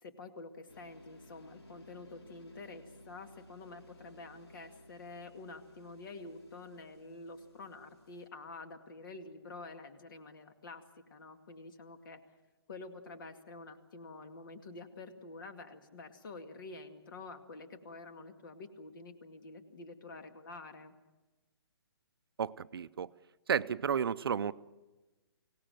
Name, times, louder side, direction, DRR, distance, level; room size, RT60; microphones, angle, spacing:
voice 1, 0.0-10.8 11.1-12.2 12.7-20.9, left 3 dB, 50° left, 2.2 m, -48 dB
sound 1, 0.7-8.3, left 1 dB, 75° left, 3.0 m, -58 dB
voice 2, 22.4-23.1 23.5-24.5, right 7 dB, 65° right, 0.6 m, -32 dB
24.5 x 17.5 x 7.7 m
hypercardioid pair, 160°, 14 cm